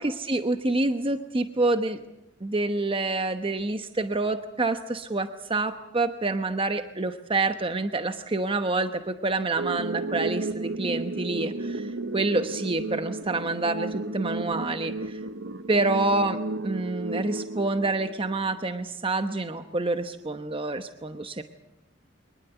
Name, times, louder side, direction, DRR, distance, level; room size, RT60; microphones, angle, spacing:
voice 1, 0.0-2.0 2.4-15.2 15.7-16.4 16.6-21.4, right 2 dB, 30° right, 8 dB, 1.0 m, -27 dB
sound 1, 9.6-18.6, right 2 dB, 90° right, 1.1 m, -33 dB
23.5 x 20.0 x 8.1 m, 0.91 s
head